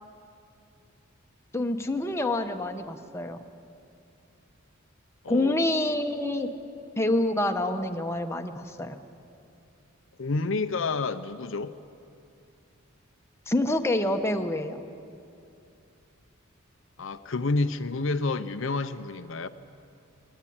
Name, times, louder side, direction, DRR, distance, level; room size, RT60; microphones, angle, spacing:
voice 1, 1.5-3.4 5.3-6.5 7.0-9.0 13.5-14.9, left 1 dB, 15° left, 5 dB, 1.0 m, -27 dB
voice 2, 10.2-11.7 17.0-19.5, left 3 dB, 65° left, 10 dB, 0.7 m, -29 dB
20.5 x 19.5 x 8.7 m, 2.6 s
head